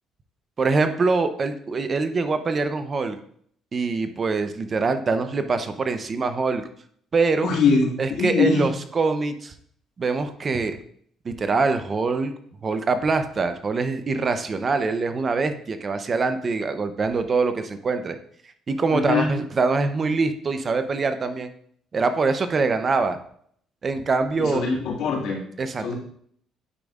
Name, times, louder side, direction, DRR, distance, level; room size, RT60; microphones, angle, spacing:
voice 1, 0.6-3.2 3.7-6.6 7.1-7.5 8.0-9.5 10.0-10.8 11.2-12.3 12.6-18.2 18.7-21.5 21.9-23.2 23.8-24.6 25.6-25.9, right 4 dB, 40° right, 9 dB, 0.7 m, -24 dB
voice 2, 7.4-8.6 18.9-19.3 24.4-25.4 25.8-25.9, left 5 dB, 75° left, -1 dB, 2.0 m, -22 dB
9.8 x 5.2 x 2.5 m, 0.62 s
supercardioid pair, 75°, 0 cm